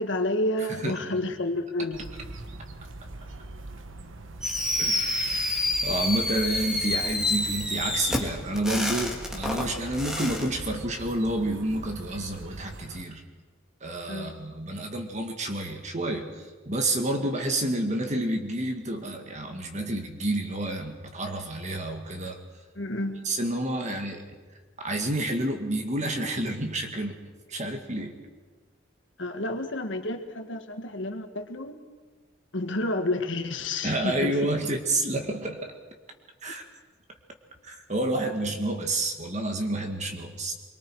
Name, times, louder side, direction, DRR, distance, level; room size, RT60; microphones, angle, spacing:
voice 1, 0.0-2.1 14.1-14.3 22.8-23.2 29.2-31.8 32.5-34.4, left 1 dB, 65° left, 6 dB, 1.7 m, -30 dB
voice 2, 0.7-1.1 4.8-13.2 13.8-22.4 23.2-24.2 24.8-27.2 27.5-28.2 33.8-35.7 36.4-36.6 37.6-40.5, right 1 dB, 35° right, 4 dB, 1.9 m, -29 dB
sound 1, 1.9-13.0, right 2 dB, 70° right, 1.1 m, -42 dB
Fireworks, 4.4-10.5, left 2 dB, 5° right, 2.0 m, -28 dB
25.0 x 23.5 x 4.8 m, 1.4 s
head